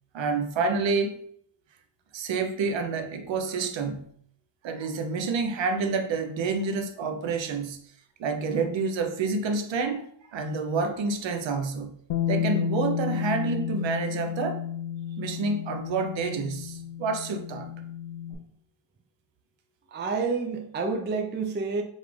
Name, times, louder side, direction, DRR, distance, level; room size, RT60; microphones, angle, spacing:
voice 1, 0.1-1.3 2.1-4.1 4.6-7.8 8.2-11.9 12.3-14.6 15.2-17.7, right 4 dB, 65° right, 0.6 m, -28 dB
Bass guitar, 12.1-18.3, left 10 dB, 70° left, 0.6 m, -31 dB
voice 2, 19.9-21.8, right 4 dB, 25° right, 0.3 m, -29 dB
5.5 x 2.4 x 3.1 m
wide cardioid pair, 150°, 49 cm